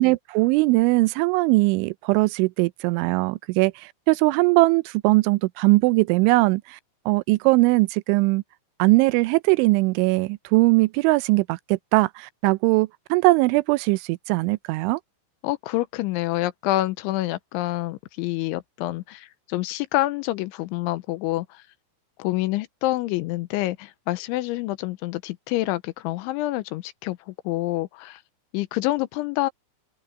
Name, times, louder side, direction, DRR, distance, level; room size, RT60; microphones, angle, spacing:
voice 1, 0.0-6.8 7.1-8.4 8.8-15.0, right 23 dB, 85° right, 2.9 m, -20 dB
voice 2, 15.4-21.5 22.2-27.2 27.5-28.2 28.5-29.5, left 17 dB, 85° left, 3.1 m, -27 dB
open air
omnidirectional pair, 5.5 m